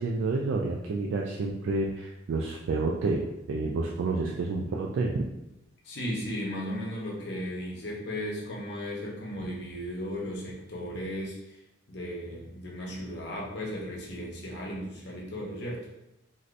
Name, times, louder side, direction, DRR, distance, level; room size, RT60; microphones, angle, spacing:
voice 1, 0.0-5.3, right 3 dB, 70° right, -1 dB, 0.3 m, -29 dB
voice 2, 5.8-11.4 11.9-15.8, equal, 55° left, -3 dB, 0.8 m, -35 dB
3.2 x 2.6 x 2.5 m, 0.90 s
head